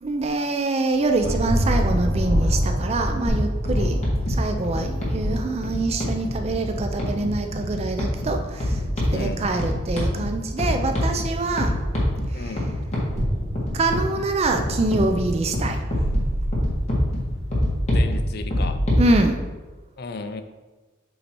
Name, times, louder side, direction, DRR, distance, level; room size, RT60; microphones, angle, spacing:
voice 1, 0.0-4.0 4.4-8.8 9.1-11.8 12.3-12.5 13.7-16.1 19.0-19.4, right 2 dB, 30° right, 6 dB, 0.4 m, -25 dB
Thunder, 0.9-18.5, equal, 70° right, 1.7 m, -30 dB
voice 2, 1.2-1.8 3.7-4.0 9.1-9.5 12.3-12.7 17.9-18.8 20.0-20.4, left 3 dB, 55° left, 8 dB, 0.5 m, -35 dB
sound 1, 3.3-19.1, left 1 dB, 35° left, 1.6 m, -26 dB
8.2 x 2.8 x 4.4 m, 1.2 s
head